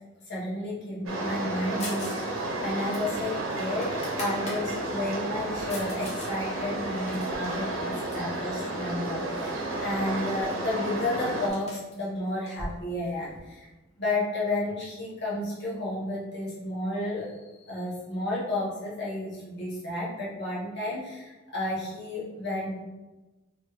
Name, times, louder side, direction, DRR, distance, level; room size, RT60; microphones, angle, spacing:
voice 1, 0.3-13.7 14.0-17.4 17.7-22.8, left 1 dB, 60° left, -6 dB, 1.2 m, -32 dB
sound 1, 1.1-11.5, right 2 dB, 80° right, 0.8 m, -32 dB
sound 2, 1.8-2.3 2.5-4.6 5.1-6.3 6.7-8.4 9.0-9.6 9.9-10.0 10.3-13.4, left 1 dB, 35° left, 0.9 m, -43 dB
3.2 x 3.1 x 3.1 m, 1.1 s
head